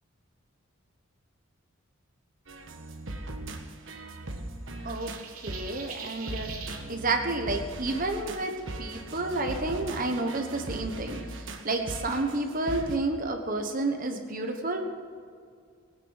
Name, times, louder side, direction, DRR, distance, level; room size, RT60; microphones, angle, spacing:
sound 1, 2.5-13.0, right 1 dB, 60° right, 1.5 m, -39 dB
sound 2, 4.9-6.8, right 6 dB, 85° right, 3.2 m, -42 dB
voice 1, 5.4-6.5 6.9-14.8, right 2 dB, 40° right, 4 dB, 1.2 m, -30 dB
19.0 x 9.4 x 6.5 m, 2.2 s
head